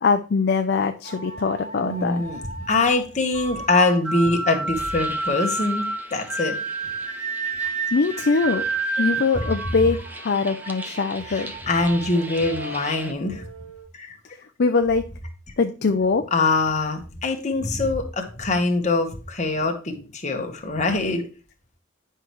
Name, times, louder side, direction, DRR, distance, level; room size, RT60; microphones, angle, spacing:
voice 1, 0.0-2.2 7.9-8.6 9.0-10.0 10.2-11.5 14.4-15.0 15.6-16.3, left 4 dB, 50° left, 7 dB, 0.5 m, -22 dB
sound 1, 1.0-13.8, right 3 dB, 60° right, 2.6 m, -31 dB
voice 2, 1.8-2.4 2.7-6.6 11.3-13.5 13.9-14.2 16.3-21.2, left 2 dB, 35° left, 4 dB, 1.2 m, -23 dB
sound 2, 4.7-13.1, right 1 dB, 10° right, 0.7 m, -41 dB
9.7 x 5.5 x 3.1 m, 0.35 s
head